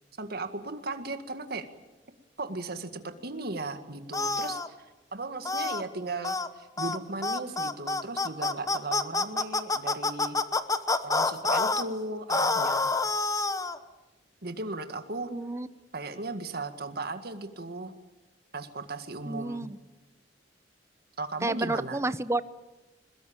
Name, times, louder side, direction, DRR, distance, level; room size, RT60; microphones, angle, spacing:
voice 1, 0.2-1.7 2.4-4.7 5.1-10.4 11.0-12.9 14.4-15.3 15.9-17.9 18.5-19.7 21.2-22.0, right 2 dB, 60° right, 8 dB, 1.9 m, -36 dB
sound 1, 4.1-4.7 5.5-5.8 6.2-6.5 6.8-7.0 7.2-11.8 12.3-13.8, left 3 dB, 20° left, 1.0 m, -27 dB
voice 2, 15.3-15.7 19.3-19.8 21.4-22.4, right 2 dB, 15° right, 14 dB, 0.8 m, -30 dB
22.5 x 21.0 x 8.8 m, 1.1 s
head